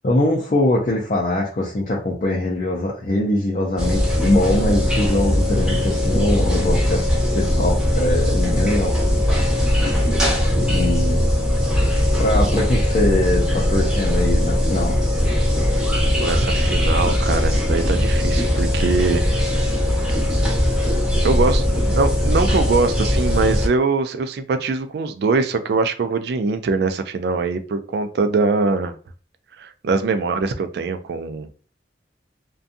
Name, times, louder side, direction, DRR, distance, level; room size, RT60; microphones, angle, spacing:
voice 1, 0.0-9.0 10.6-11.2 12.2-15.0, left 1 dB, 45° left, -3 dB, 0.5 m, -22 dB
sound 1, 3.8-23.7, left 1 dB, 5° right, 0.6 m, -19 dB
voice 2, 16.2-19.3 21.2-28.9 29.6-31.5, right 4 dB, 60° right, 10 dB, 0.3 m, -22 dB
2.6 x 2.2 x 2.6 m, 0.39 s
head